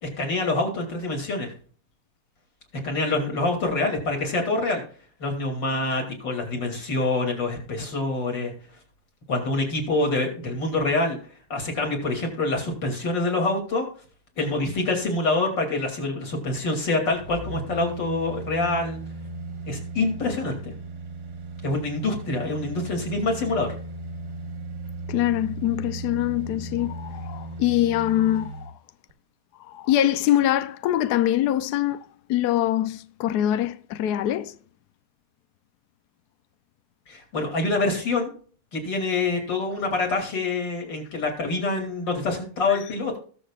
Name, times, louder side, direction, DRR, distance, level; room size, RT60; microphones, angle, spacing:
voice 1, 0.0-1.5 2.8-4.8 5.2-8.5 9.3-11.2 11.5-13.8 14.4-19.0 19.7-20.7 21.6-23.7 37.1-38.3 38.7-43.2, left 2 dB, 55° left, 3.4 m, -26 dB
sound 1, 17.1-28.7 29.1-29.2, right 3 dB, 40° right, 1.2 m, -36 dB
voice 2, 25.1-28.7 29.6-34.5 42.7-43.0, left 12 dB, 75° left, 0.9 m, -24 dB
20.0 x 7.1 x 2.4 m
omnidirectional pair, 2.3 m